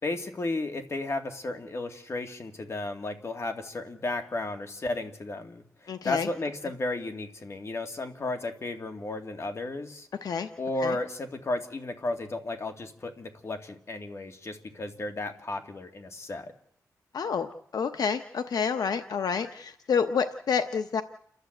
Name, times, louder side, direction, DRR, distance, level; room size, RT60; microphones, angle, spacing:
voice 1, 0.0-10.1 10.6-16.5, left 2 dB, 45° left, 5 dB, 2.3 m, -34 dB
voice 2, 5.9-6.3 10.2-10.5 10.8-10.9 17.1-21.0, left 6 dB, 85° left, 9 dB, 0.9 m, -28 dB
29.5 x 12.0 x 8.0 m, 0.70 s
wide cardioid pair, 110°, 6 cm